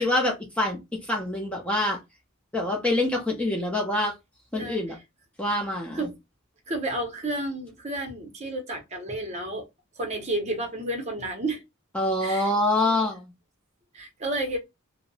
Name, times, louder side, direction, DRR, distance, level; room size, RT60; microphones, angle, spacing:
voice 1, 0.0-2.0 2.5-4.1 4.5-5.0 5.4-6.1 11.9-13.3, left 1 dB, 5° left, 0.5 m, -25 dB
voice 2, 6.7-9.7 10.0-11.6 12.2-12.5 13.9-14.6, right 1 dB, 30° right, 0.7 m, -31 dB
2.7 x 2.0 x 2.6 m
head